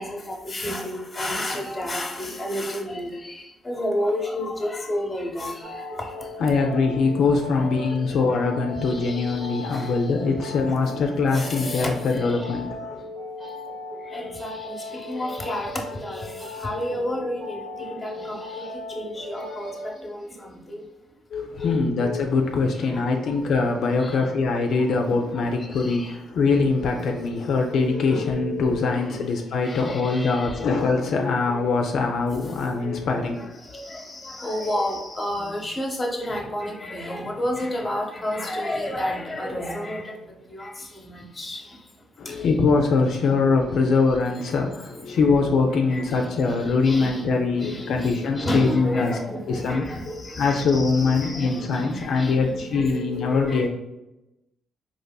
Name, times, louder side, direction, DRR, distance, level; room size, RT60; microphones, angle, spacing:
voice 1, 0.0-3.3 3.6-5.6 7.6-7.7 9.0-9.4 9.7-9.9 11.3-11.9 12.2-12.4 14.1-14.6 15.1-16.3 16.6-18.4 19.0-19.7 20.0-20.2 20.7-20.8 21.6-21.7 24.0-24.2 24.8-25.4 25.7-26.1 28.1-28.3 28.9-29.2 29.6-30.5 33.7-40.1 40.5-40.7 41.0-41.6 42.3-42.4 45.9-46.6 46.8-47.2 47.6-52.8 53.5-53.7, left 1 dB, 20° left, 1 dB, 0.8 m, -31 dB
sound 1, 5.6-19.9, left 2 dB, 70° right, 0.9 m, -37 dB
voice 2, 6.4-13.0 21.3-33.6 42.2-49.2 49.5-49.8 50.4-53.7, left 4 dB, 70° left, 2 dB, 0.4 m, -23 dB
4.1 x 2.9 x 2.2 m, 0.95 s
cardioid pair, 90°, 0 cm